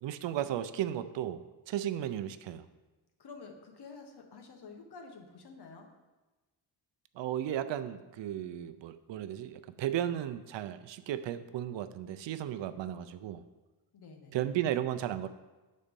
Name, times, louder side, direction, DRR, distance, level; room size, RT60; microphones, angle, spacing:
voice 1, 0.0-2.7 7.2-13.4 14.3-15.3, right 11 dB, 80° right, 11 dB, 0.6 m, -35 dB
voice 2, 3.2-5.9 13.9-14.4, left 4 dB, 60° left, 4 dB, 1.2 m, -49 dB
8.5 x 4.2 x 5.2 m, 1.2 s
cardioid pair, 120°, 44 cm